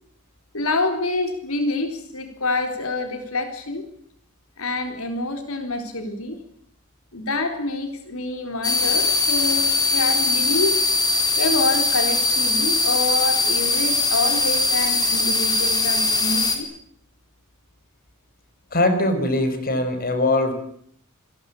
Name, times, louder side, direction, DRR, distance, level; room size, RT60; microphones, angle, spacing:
voice 1, 0.5-3.9 4.6-6.4 7.1-10.8 11.4-16.7, left 2 dB, 80° left, 6 dB, 4.1 m, -26 dB
sound 1, 8.6-16.6, left 3 dB, 20° left, 4.1 m, -21 dB
voice 2, 18.7-20.5, left 2 dB, 45° left, 10 dB, 4.9 m, -21 dB
28.0 x 21.0 x 8.6 m, 0.67 s
head